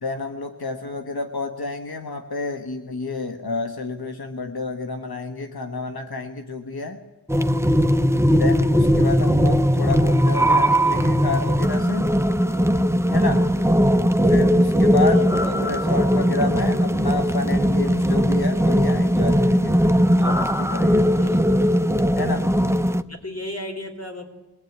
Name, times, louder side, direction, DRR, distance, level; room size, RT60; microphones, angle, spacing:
voice 1, 0.0-7.0 8.3-12.1 13.1-13.5 14.3-19.7 20.2-21.3 22.2-22.6, left 3 dB, 85° left, 6 dB, 1.4 m, -30 dB
sound 1, 7.3-23.0, equal, 5° right, 1.0 m, -19 dB
voice 2, 21.2-21.8 23.1-24.2, left 1 dB, 40° left, 5 dB, 4.0 m, -35 dB
22.5 x 19.0 x 9.4 m, 1.1 s
wide cardioid pair, 45°, 37 cm